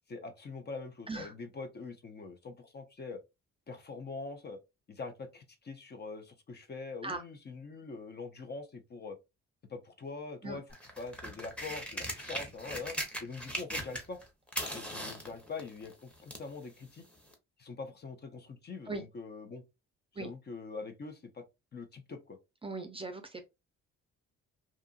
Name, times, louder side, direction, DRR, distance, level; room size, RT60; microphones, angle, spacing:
voice 1, 0.1-3.2 3.7-4.6 4.9-9.2 9.7-10.6 11.0-14.2 14.7-17.1 17.6-19.6 20.1-21.4 21.7-22.4, left 4 dB, 35° left, 0.6 m, -43 dB
sound 1, 10.7-14.2 14.5-16.5 17.3-17.4, equal, 5° left, 0.9 m, -39 dB
voice 2, 22.6-23.5, right 3 dB, 20° right, 0.5 m, -39 dB
2.8 x 2.4 x 2.3 m
cardioid pair, 90°, 30 cm